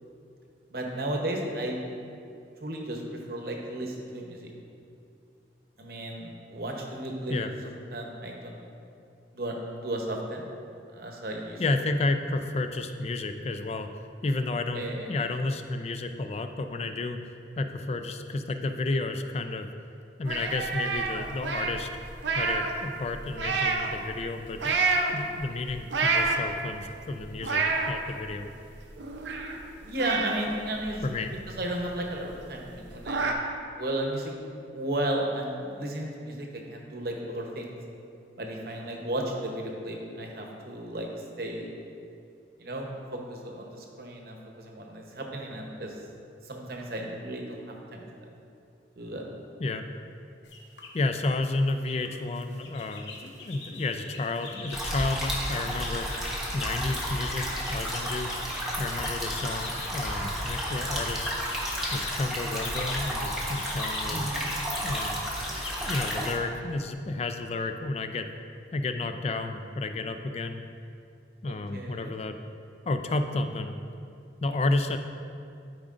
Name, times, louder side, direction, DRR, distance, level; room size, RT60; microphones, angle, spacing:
voice 1, 0.7-1.8 2.6-4.5 5.8-7.4 7.9-8.6 9.3-10.4 10.9-11.6 14.7-15.1 29.8-31.1 31.6-33.3 33.8-34.3 34.7-37.8 38.4-41.1 41.4-41.7 42.6-46.0 46.4-47.6 47.9-48.3 49.0-49.2 64.1-64.4 71.4-72.1, right 1 dB, 55° right, 1 dB, 0.9 m, -34 dB
voice 2, 11.6-13.9 14.2-19.7 20.2-21.9 22.3-24.8 25.1-28.5 31.0-31.3 49.6-49.8 50.9-56.2 56.5-58.3 58.8-61.3 61.9-64.5 64.8-65.2 65.8-68.3 68.7-70.6 71.4-72.4 72.9-73.8 74.4-75.0, left 2 dB, 35° left, 7 dB, 0.3 m, -31 dB
sound 1, 20.2-22.8 23.1-24.0 24.5-25.1 25.7-26.7 27.1-27.9 28.4-28.5 28.7-29.6 30.0-31.5 31.9-32.0 32.3-32.4 32.7-33.3, right 4 dB, 85° right, 0.7 m, -28 dB
sound 2, 50.4-50.9 51.5-52.1 52.4-66.4, left 4 dB, 75° left, 0.8 m, -43 dB
sound 3, 54.7-66.3, equal, ahead, 1.0 m, -32 dB
12.0 x 5.0 x 2.5 m, 2.5 s
head